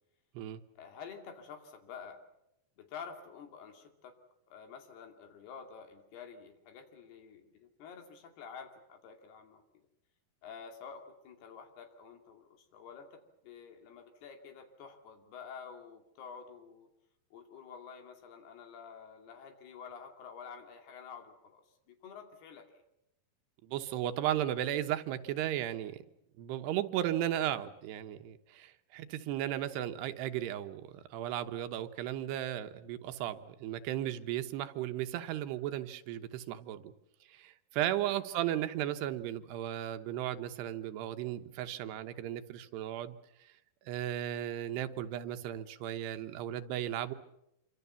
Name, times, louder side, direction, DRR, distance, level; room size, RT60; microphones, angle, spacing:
voice 1, 0.8-2.2 2.8-4.2 4.5-9.9 10.4-16.9 17.3-22.7 38.0-38.2, left 6 dB, 75° left, 5 dB, 4.7 m, -49 dB
voice 2, 23.6-26.0 26.4-36.9 37.3-43.2 43.9-47.1, right 12 dB, 85° right, 9 dB, 3.2 m, -35 dB
26.5 x 25.0 x 7.0 m, 0.83 s
omnidirectional pair, 4.7 m